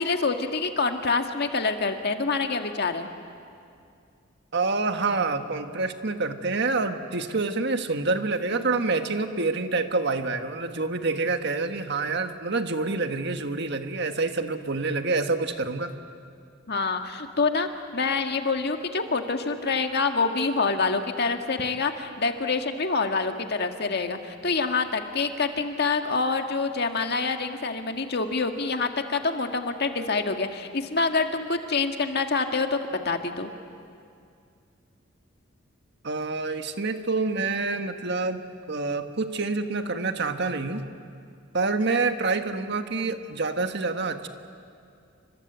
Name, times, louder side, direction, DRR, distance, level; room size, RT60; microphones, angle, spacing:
voice 1, 0.0-3.1 16.7-33.5, left 4 dB, 55° left, 5 dB, 1.8 m, -26 dB
voice 2, 4.5-15.9 36.0-38.4 38.7-40.9 41.5-44.3, right 3 dB, 55° right, 7 dB, 1.5 m, -27 dB
29.0 x 25.0 x 8.2 m, 2.3 s
head